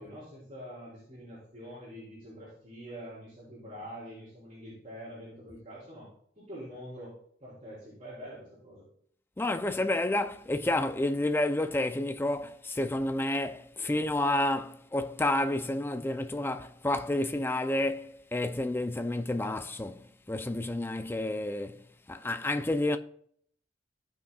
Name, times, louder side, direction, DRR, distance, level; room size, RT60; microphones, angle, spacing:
voice 1, 0.0-6.1 6.4-7.1 7.4-8.9, equal, 40° right, 3.6 m, -45 dB
voice 2, 9.4-23.0, left 1 dB, 15° left, 0.4 m, -30 dB
15.5 x 5.9 x 2.3 m
head